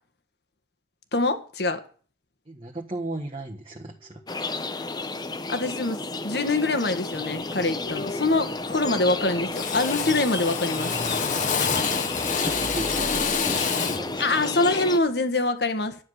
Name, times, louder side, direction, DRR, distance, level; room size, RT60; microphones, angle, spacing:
voice 1, 1.1-1.8 5.5-6.0 6.2-10.9 14.2-16.0, left 2 dB, 65° left, 1.8 m, -24 dB
voice 2, 2.4-4.2 12.5-14.5, right 2 dB, 30° right, 1.6 m, -36 dB
sound 1, 3.7-13.8, equal, 10° left, 2.2 m, -46 dB
sound 2, 4.3-15.0, left 3 dB, 25° left, 0.8 m, -31 dB
Drill, 7.2-7.4 7.8-8.3 8.6-9.2 9.5-14.1, left 6 dB, 45° left, 1.2 m, -28 dB
12.0 x 9.8 x 6.6 m
head